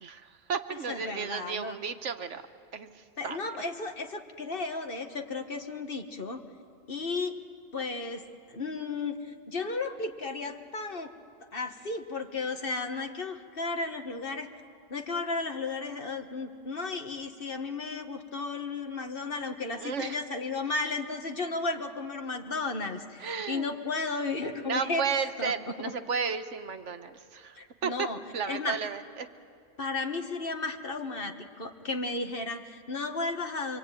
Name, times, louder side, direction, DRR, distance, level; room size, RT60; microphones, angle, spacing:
voice 1, 0.0-2.4 2.7-3.4 19.8-20.2 23.2-23.6 24.5-28.1 28.3-29.3, right 6 dB, 80° right, 9 dB, 1.4 m, -33 dB
voice 2, 0.7-1.8 3.2-6.4 6.9-7.4 7.7-11.1 11.5-14.5 14.9-25.1 25.4-25.9 27.6-28.2 28.5-28.8 29.8-33.8, left 3 dB, 50° left, 6 dB, 1.7 m, -34 dB
25.5 x 25.0 x 9.1 m, 2.3 s
omnidirectional pair, 1.2 m